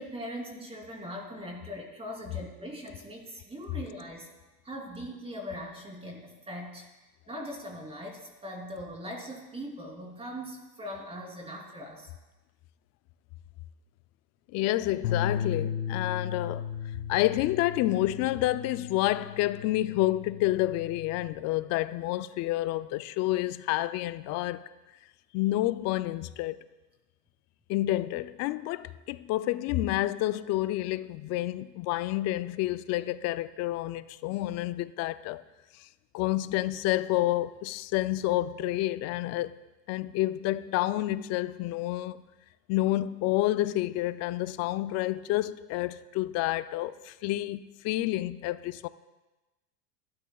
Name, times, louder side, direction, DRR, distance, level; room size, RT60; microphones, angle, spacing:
voice 1, 0.0-4.3 4.6-6.9 7.3-12.1, equal, 10° right, 3.4 m, -40 dB
voice 2, 14.5-16.7 17.1-24.7 25.3-26.6 27.7-35.4 35.8-35.9 36.1-39.6 39.9-42.2 42.7-48.9, left 16 dB, 35° left, 0.5 m, -29 dB
Bass guitar, 15.0-21.3, left 8 dB, 75° left, 1.6 m, -35 dB
21.5 x 12.5 x 2.4 m
hypercardioid pair, 110°, 48 cm